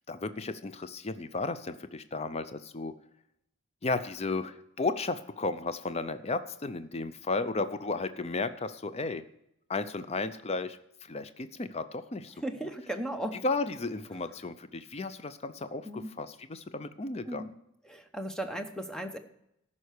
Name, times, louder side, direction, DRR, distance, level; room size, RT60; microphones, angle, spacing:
voice 1, 0.1-3.0 3.8-9.2 9.7-12.7 13.4-17.4, left 3 dB, 30° left, 12 dB, 0.5 m, -34 dB
voice 2, 12.4-13.4 15.9-16.1 17.3-17.5 17.9-19.2, right 1 dB, 5° left, 6 dB, 0.8 m, -36 dB
14.0 x 5.6 x 6.5 m, 0.79 s
head